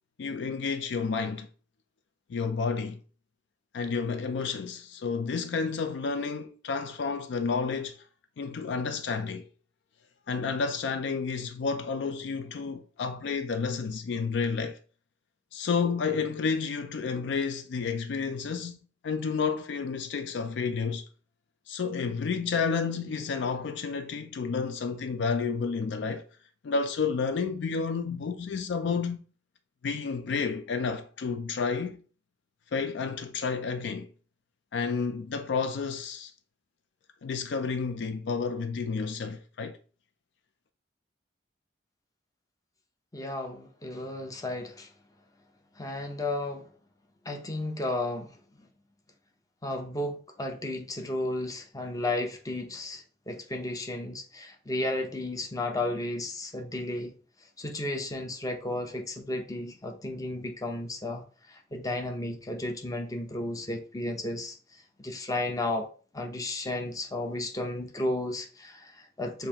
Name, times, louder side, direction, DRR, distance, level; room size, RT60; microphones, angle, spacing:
voice 1, 0.2-1.5 2.3-3.0 3.7-8.0 8.4-9.5 10.3-14.8 15.5-18.8 19.0-21.0 21.7-26.2 26.6-29.2 29.8-32.0 32.7-34.1 34.7-36.3 37.2-39.8, left 5 dB, 65° left, 0.4 m, -30 dB
voice 2, 43.1-44.9 45.8-46.7 47.2-48.4 49.6-57.2 57.6-65.9 66.1-69.5, left 1 dB, 20° left, 0.6 m, -33 dB
6.7 x 2.6 x 2.8 m
head